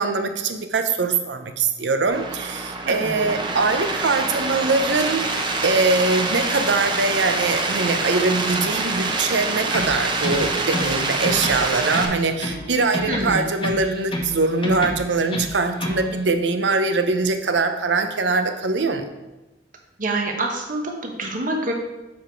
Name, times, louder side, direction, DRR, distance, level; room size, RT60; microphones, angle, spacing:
voice 1, 0.0-5.3 5.6-19.0, right 3 dB, 80° right, 8 dB, 0.7 m, -22 dB
sound 1, 2.1-12.1, right 3 dB, 25° right, 0.8 m, -26 dB
voice 2, 2.8-3.4 13.1-13.5 20.0-21.7, right 2 dB, 50° right, 1 dB, 1.2 m, -26 dB
sound 2, 9.7-11.0 11.2-12.7 12.9-14.4 14.6-16.1, left 1 dB, 30° left, 1.0 m, -28 dB
7.3 x 4.8 x 4.5 m, 1.0 s
head